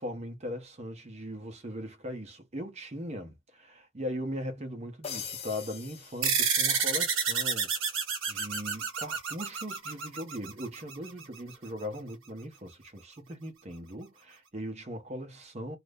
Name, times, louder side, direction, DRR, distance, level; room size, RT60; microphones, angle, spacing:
voice 1, 0.0-8.0 8.3-15.8, equal, 35° right, 0.7 m, -39 dB
sound 1, 5.0-7.1, left 7 dB, 30° left, 0.6 m, -43 dB
sound 2, 6.2-11.1, right 6 dB, 85° right, 1.0 m, -30 dB
2.5 x 2.0 x 3.4 m
head